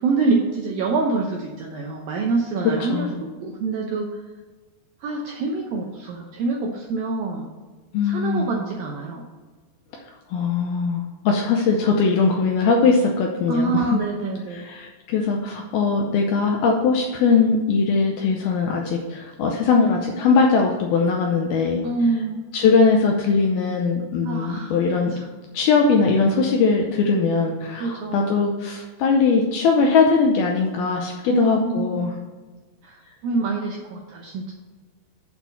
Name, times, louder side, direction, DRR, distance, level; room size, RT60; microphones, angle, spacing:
voice 1, 0.0-4.2 5.0-7.5 8.0-9.2 13.5-14.7 21.8-22.4 24.2-24.8 25.1-25.3 27.8-28.3 31.3-32.0 32.8-34.5, right 3 dB, 80° right, 0 dB, 2.1 m, -26 dB
voice 2, 7.9-8.6 10.3-14.0 14.5-21.8 22.5-25.1 25.5-32.1, left 4 dB, 80° left, 1 dB, 2.2 m, -20 dB
8.0 x 4.4 x 7.0 m, 1.3 s
omnidirectional pair, 5.1 m